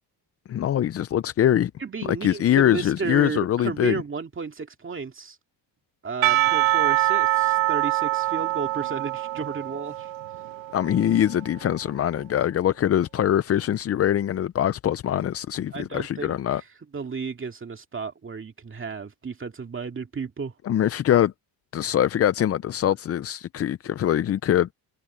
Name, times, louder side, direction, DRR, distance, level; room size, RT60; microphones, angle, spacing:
voice 1, 0.5-1.7 2.0-4.0 10.7-16.6 20.6-21.3 21.7-24.7, left 11 dB, 35° left, 0.4 m, -23 dB
voice 2, 1.8-5.4 6.0-10.1 15.7-16.6 16.9-20.5, right 5 dB, 25° right, 2.2 m, -33 dB
Percussion / Church bell, 6.2-11.5, right 16 dB, 85° right, 1.3 m, -24 dB
cardioid pair, 125°, 45 cm